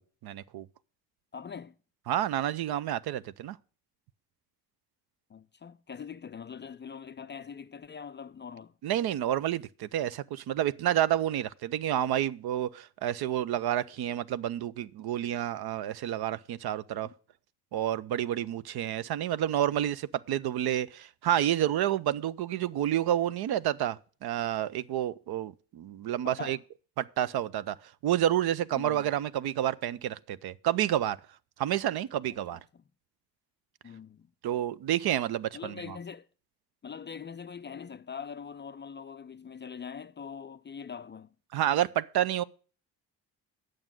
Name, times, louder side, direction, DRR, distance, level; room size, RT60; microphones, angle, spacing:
voice 1, 0.2-0.7 2.1-3.6 8.8-17.1 17.7-26.6 27.0-27.8 28.0-31.2 31.6-32.6 34.4-36.0 41.5-42.4, right 11 dB, 55° right, 0.6 m, -29 dB
voice 2, 1.3-1.7 5.3-8.7 17.0-17.1 26.2-26.6 28.7-29.1 32.7-32.8 33.8-34.3 35.5-36.3 36.8-41.3, left 6 dB, 25° left, 0.4 m, -43 dB
8.8 x 6.4 x 7.3 m
hypercardioid pair, 50°, 47 cm